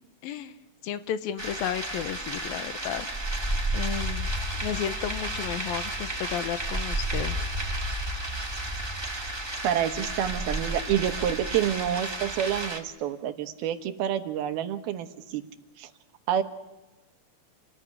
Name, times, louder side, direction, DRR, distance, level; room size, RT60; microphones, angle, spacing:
voice 1, 0.2-0.6 0.8-3.1 3.7-4.3 4.6-7.4, left 10 dB, 75° left, 11 dB, 2.8 m, -33 dB
sound 1, 1.4-12.8, right 1 dB, 15° right, 0.8 m, -32 dB
voice 2, 9.6-15.4 15.8-15.9 16.3-16.4, right 10 dB, 90° right, 8 dB, 3.2 m, -28 dB
28.0 x 20.0 x 9.5 m, 1.1 s
omnidirectional pair, 4.3 m